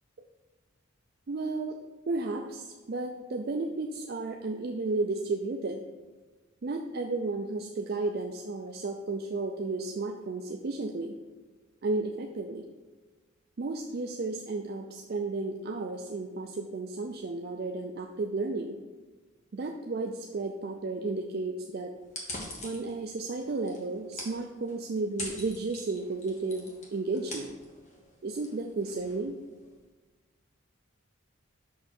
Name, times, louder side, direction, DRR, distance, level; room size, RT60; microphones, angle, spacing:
voice 1, 1.3-1.8 2.1-5.8 6.6-11.2 11.8-12.7 13.6-18.8 19.5-21.9 22.6-27.6 28.2-29.4, right 3 dB, 45° right, 3 dB, 0.4 m, -33 dB
sound 1, 22.0-29.8, left 1 dB, 35° left, 1.4 m, -44 dB
6.5 x 5.7 x 4.3 m, 1.3 s
head